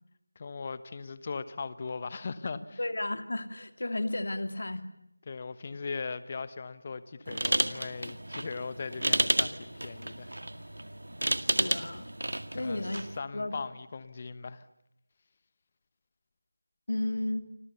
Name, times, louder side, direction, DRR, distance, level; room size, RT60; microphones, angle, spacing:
voice 1, 0.3-2.8 5.3-10.3 12.5-12.8 13.2-14.7, left 4 dB, 25° left, 15 dB, 1.2 m, -39 dB
voice 2, 2.8-4.9 11.4-12.1 12.5-13.0 13.3-13.5 16.9-17.5, left 1 dB, 55° left, 9 dB, 2.5 m, -33 dB
sound 1, 7.3-13.2, right 1 dB, 70° right, 2.0 m, -31 dB
29.0 x 26.5 x 6.9 m, 0.84 s
figure-of-eight pair, 170°, 0 cm